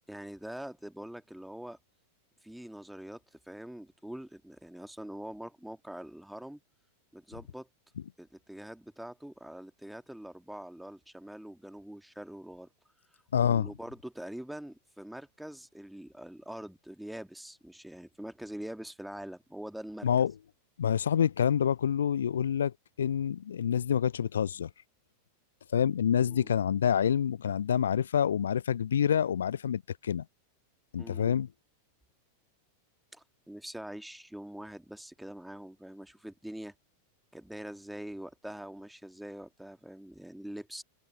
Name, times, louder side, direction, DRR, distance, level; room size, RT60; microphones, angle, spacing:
voice 1, 0.1-1.8 2.4-6.6 7.1-7.7 8.2-12.7 13.1-20.1 26.3-26.5 31.0-31.4 33.1-36.7 37.3-40.8, right 1 dB, ahead, 1.9 m, -44 dB
voice 2, 13.3-13.7 20.0-20.3 20.8-24.7 25.7-30.2 30.9-31.5, left 8 dB, 65° left, 0.4 m, -27 dB
open air
figure-of-eight pair, 90°, 0 cm